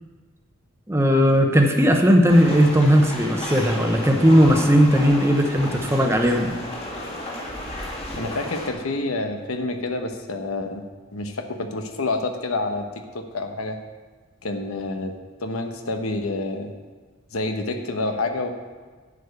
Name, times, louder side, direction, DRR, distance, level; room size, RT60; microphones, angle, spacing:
voice 1, 0.9-6.5, equal, 10° right, 3 dB, 0.9 m, -17 dB
sound 1, 2.3-8.7, left 1 dB, 30° left, 1.9 m, -33 dB
voice 2, 8.2-10.8 11.1-13.8 14.4-15.1 15.4-16.7 17.3-18.5, left 2 dB, 90° left, 6 dB, 1.0 m, -28 dB
10.5 x 5.1 x 8.1 m, 1.4 s
head